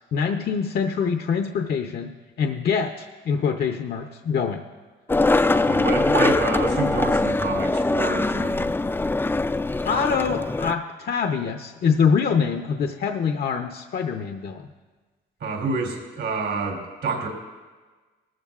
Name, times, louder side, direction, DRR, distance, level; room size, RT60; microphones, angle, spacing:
voice 1, 0.1-2.1 2.4-4.6 9.8-14.7, left 6 dB, 55° left, 4 dB, 0.7 m, -24 dB
Skateboard, 5.1-10.7, left 2 dB, 10° left, 0.4 m, -22 dB
voice 2, 5.5-8.7 15.4-17.3, right 3 dB, 75° right, -1 dB, 3.3 m, -28 dB
19.0 x 14.0 x 2.4 m, 1.3 s
cardioid pair, 90°, 20 cm